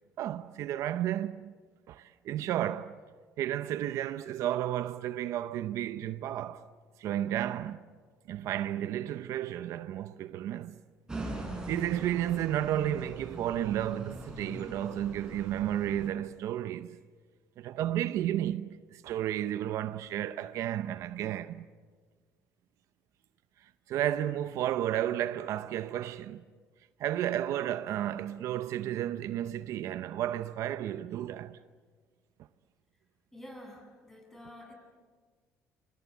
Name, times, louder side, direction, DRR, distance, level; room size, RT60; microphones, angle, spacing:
voice 1, 0.2-1.5 1.9-3.0 3.4-6.7 7.0-7.8 8.3-10.8 11.7-17.0 17.6-21.7 23.6-26.4 27.0-31.6, right 12 dB, 70° right, 0.8 m, -32 dB
sound 1, 11.1-16.1, right 2 dB, 15° right, 6.2 m, -41 dB
voice 2, 33.3-34.7, left 1 dB, 5° left, 7.7 m, -48 dB
27.0 x 26.0 x 8.3 m
cardioid pair, 120°, 5 cm